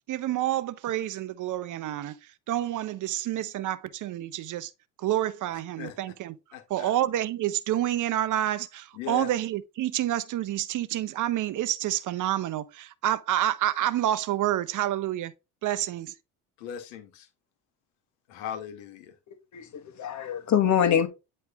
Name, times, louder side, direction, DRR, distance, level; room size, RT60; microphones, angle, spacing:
voice 1, 0.1-4.7 5.0-6.3 6.7-15.3 15.6-16.2, right 13 dB, 50° right, 0.7 m, -28 dB
voice 2, 6.5-6.9 8.9-9.3 16.6-17.3 18.3-19.1, left 9 dB, 85° left, 1.3 m, -38 dB
voice 3, 19.5-21.1, left 9 dB, 45° left, 1.3 m, -24 dB
9.5 x 3.2 x 3.4 m
supercardioid pair, 75°, 39 cm